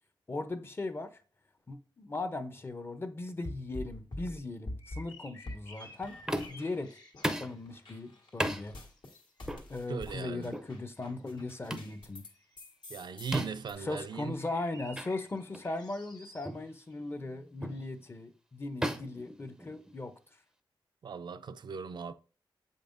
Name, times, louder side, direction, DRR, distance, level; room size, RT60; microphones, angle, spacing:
voice 1, 0.3-1.1 1.7-6.2 6.5-7.0 7.4-8.7 9.7-12.2 13.8-20.1, left 2 dB, 25° left, 0.6 m, -38 dB
sound 1, 3.4-5.1 5.5-6.9 7.1-12.3 12.6-13.7, left 1 dB, 70° left, 1.6 m, -45 dB
sound 2, 4.8-7.8 8.1-9.5 9.9-10.6 11.0-16.9 17.7-17.9, left 1 dB, 55° left, 1.3 m, -55 dB
sound 3, 6.3-6.7 7.2-7.6 8.4-8.6 9.5-9.7 10.5-10.7 11.7-11.9 13.3-13.7 14.9-15.1 15.5-15.7 16.4-16.7 17.6-17.9 18.8-20.0, right 1 dB, 5° right, 0.5 m, -35 dB
voice 2, 9.9-10.5 12.9-14.4 21.0-22.1, right 5 dB, 60° right, 0.4 m, -38 dB
7.7 x 5.3 x 2.6 m
wide cardioid pair, 130°, 9 cm